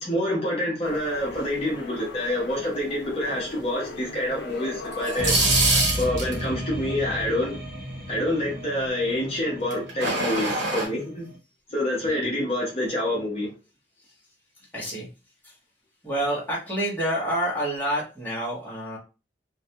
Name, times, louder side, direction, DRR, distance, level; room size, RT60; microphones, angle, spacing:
voice 1, 0.0-5.3 6.0-7.6 8.1-11.3 11.7-13.5, left 1 dB, 35° left, 0.8 m, -27 dB
sound 1, 0.8-5.8, left 3 dB, 65° left, 0.6 m, -39 dB
sound 2, 4.9-6.4 9.7-10.9, right 2 dB, 80° right, 1.1 m, -23 dB
sound 3, 5.2-11.4, equal, 55° right, 0.8 m, -33 dB
voice 2, 14.7-15.1 15.4-15.5 16.0-19.0, right 1 dB, 10° left, 0.9 m, -28 dB
2.3 x 2.2 x 2.7 m
head